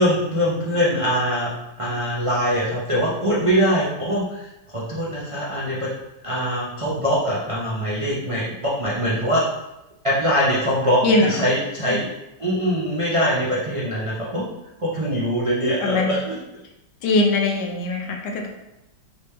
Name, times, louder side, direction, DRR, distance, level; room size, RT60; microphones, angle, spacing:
voice 1, 0.0-5.9 6.2-9.4 10.0-12.1 12.4-14.4 14.8-16.3, equal, 55° right, -8 dB, 0.3 m, -23 dB
voice 2, 15.8-16.2 17.0-18.5, left 2 dB, 75° left, 2 dB, 1.2 m, -21 dB
3.9 x 3.3 x 3.3 m, 0.92 s
omnidirectional pair, 2.0 m